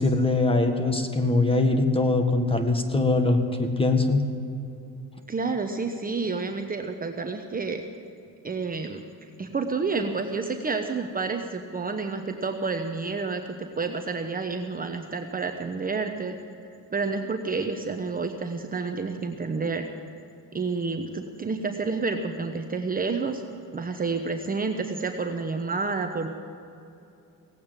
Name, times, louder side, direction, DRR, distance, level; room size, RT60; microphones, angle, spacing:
voice 1, 0.0-4.2, left 2 dB, 15° left, 6 dB, 1.7 m, -22 dB
voice 2, 5.3-7.8 8.4-9.0 9.4-16.3 16.9-19.9 20.5-23.4 23.7-26.3, right 4 dB, 25° right, 5 dB, 1.0 m, -29 dB
17.5 x 8.4 x 9.0 m, 2.7 s
cardioid pair, 100°, 37 cm